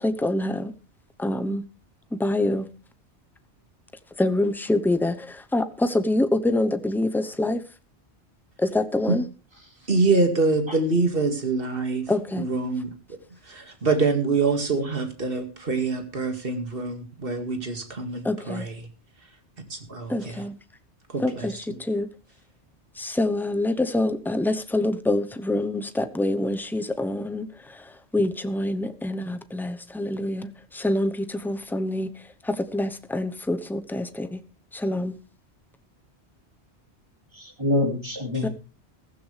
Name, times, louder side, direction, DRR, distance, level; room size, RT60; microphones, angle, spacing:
voice 1, 0.2-0.5 1.2-1.6 2.2-2.6 4.2-5.1 5.5-5.6 5.9-7.6 8.7-9.2 12.1-12.4 18.3-18.6 20.1-20.5 21.2-21.5 21.9-22.1 23.2-25.8 26.2-27.4 28.1-30.4 30.8-31.1 31.5-32.1 32.7-34.0 34.8-35.1 38.4-38.5, left 1 dB, ahead, 0.7 m, -25 dB
voice 2, 9.9-12.1 12.4-12.9 13.5-18.7 19.7-20.3 21.1-21.8, right 3 dB, 55° right, 2.3 m, -25 dB
voice 3, 37.3-38.5, left 2 dB, 25° right, 2.9 m, -27 dB
15.5 x 14.5 x 3.3 m
omnidirectional pair, 1.2 m